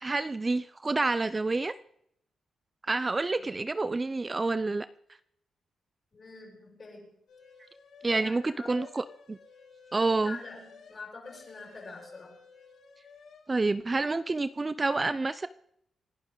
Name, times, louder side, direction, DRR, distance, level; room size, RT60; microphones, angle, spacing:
voice 1, 0.0-1.7 2.9-4.9 8.0-9.4 9.9-10.4 13.5-15.5, right 3 dB, 25° right, 14 dB, 0.5 m, -28 dB
voice 2, 6.1-7.1 8.1-8.9 10.2-12.4, left 3 dB, 40° left, -2 dB, 7.8 m, -45 dB
sound 1, 7.3-8.4 8.7-13.5, left 5 dB, 85° left, 5.8 m, -54 dB
28.0 x 11.5 x 3.9 m, 0.71 s
cardioid pair, 95°, 0 cm